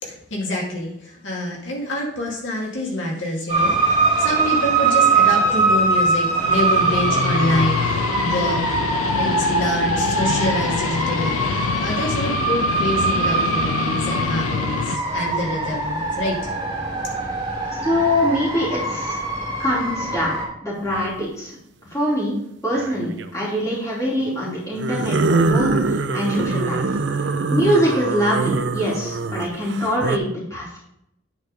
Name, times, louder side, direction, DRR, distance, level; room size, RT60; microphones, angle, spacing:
voice 1, 0.0-16.5, left 1 dB, 70° left, -2 dB, 2.2 m, -26 dB
sound 1, 3.5-20.4, right 3 dB, 20° right, 3.2 m, -22 dB
Guitar, 6.3-15.0, left 6 dB, 90° left, 0.4 m, -26 dB
voice 2, 17.8-19.2 19.6-20.3 20.6-21.5 21.9-22.4 22.6-30.8, equal, 15° left, -6 dB, 2.9 m, -23 dB
sound 2, 20.9-21.2 22.8-23.3 24.7-30.2, right 3 dB, 60° right, 0.5 m, -23 dB
9.5 x 4.7 x 5.2 m, 0.76 s
head